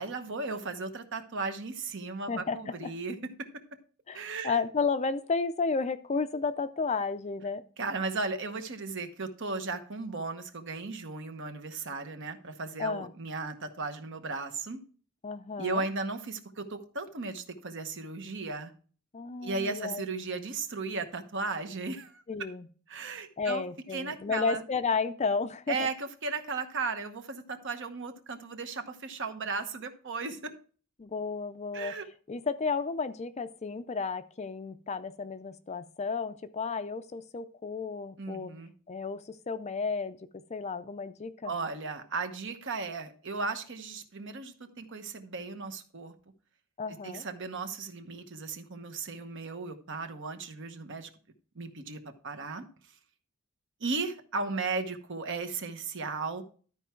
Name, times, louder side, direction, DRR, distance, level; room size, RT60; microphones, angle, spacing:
voice 1, 0.0-3.5 4.1-4.6 7.8-14.8 15.6-18.7 19.4-22.2 22.9-23.6 23.9-24.6 25.7-30.5 31.7-32.1 38.2-38.7 41.4-46.1 47.0-51.1 51.5-52.6 53.8-56.4, right 3 dB, 55° right, 8 dB, 1.0 m, -36 dB
voice 2, 2.3-2.9 4.1-7.6 12.8-13.1 15.2-15.8 19.1-20.1 22.3-22.7 23.4-25.9 31.0-32.0 32.3-38.5 38.9-41.5 46.8-47.2, left 4 dB, 30° left, 12 dB, 0.4 m, -32 dB
12.5 x 4.6 x 4.4 m, 0.42 s
head